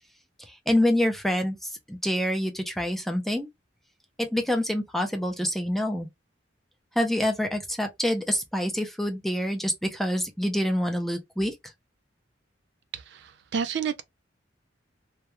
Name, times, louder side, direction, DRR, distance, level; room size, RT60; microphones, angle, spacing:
voice 1, 0.7-3.5 4.2-6.1 7.0-11.5, left 1 dB, ahead, 0.4 m, -26 dB
voice 2, 12.9-14.0, right 6 dB, 65° right, 0.4 m, -30 dB
2.3 x 2.2 x 2.8 m
head